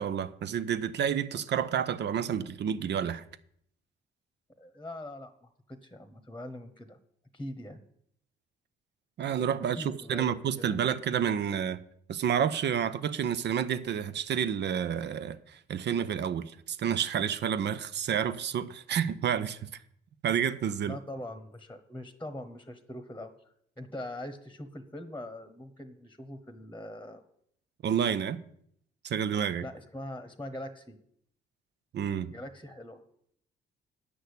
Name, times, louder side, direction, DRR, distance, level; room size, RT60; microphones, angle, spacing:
voice 1, 0.0-3.2 9.2-11.8 12.1-19.7 20.2-21.0 27.8-28.4 29.0-29.6 31.9-32.3, right 8 dB, 60° right, 0.8 m, -29 dB
voice 2, 4.6-7.0 7.3-7.8 9.8-10.8 20.8-23.3 23.8-27.2 29.6-31.0 32.3-33.0, left 1 dB, 10° left, 1.1 m, -42 dB
9.4 x 6.3 x 8.3 m
cardioid pair, 90°, 20 cm